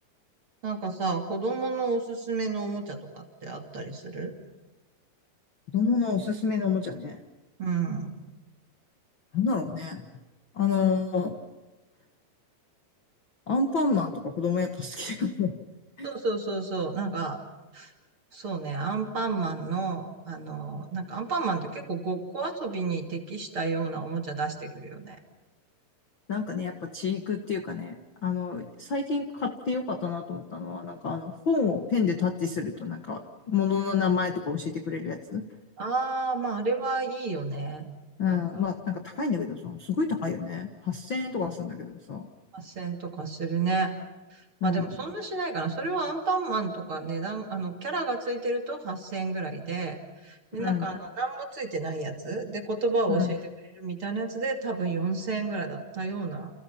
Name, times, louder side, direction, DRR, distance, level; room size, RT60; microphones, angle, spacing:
voice 1, 0.6-4.3 7.6-8.1 16.0-17.4 17.7-17.9 18.3-25.2 35.8-37.9 38.3-38.4 42.5-43.9 44.3-53.4 53.8-56.5, right 3 dB, 35° right, 3 dB, 2.9 m, -31 dB
voice 2, 5.7-7.2 9.3-10.0 10.5-11.3 13.5-15.5 16.0-16.1 26.3-33.2 33.5-35.4 38.2-42.3 44.6-44.9 50.6-51.0 53.1-53.4, left 5 dB, 60° left, 5 dB, 1.2 m, -28 dB
30.0 x 30.0 x 5.9 m, 1.1 s
omnidirectional pair, 5.2 m